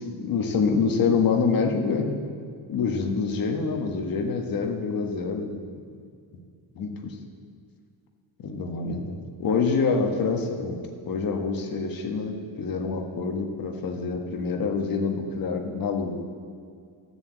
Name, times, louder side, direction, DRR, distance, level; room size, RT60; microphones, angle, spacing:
voice 1, 0.0-2.2 2.7-5.6 6.7-7.1 8.4-10.8 11.1-16.2, left 5 dB, 55° left, 3 dB, 1.4 m, -26 dB
13.5 x 7.0 x 8.0 m, 2.2 s
cardioid pair, 170°, 41 cm